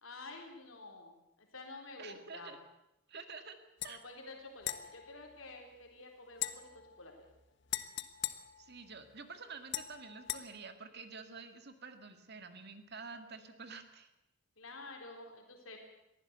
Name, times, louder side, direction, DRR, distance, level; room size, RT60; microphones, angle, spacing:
voice 1, 0.0-2.5 3.8-7.1 14.6-15.8, left 2 dB, 90° left, 2 dB, 3.9 m, -50 dB
voice 2, 2.0-2.6 3.1-3.6 3.8-4.0 8.6-14.1, right 4 dB, 55° right, 8 dB, 2.1 m, -49 dB
sound 1, 3.8-3.9 4.6-5.9 6.3-9.2 9.7-10.4, left 13 dB, 60° left, 1.2 m, -42 dB
22.0 x 15.5 x 8.2 m, 0.88 s
head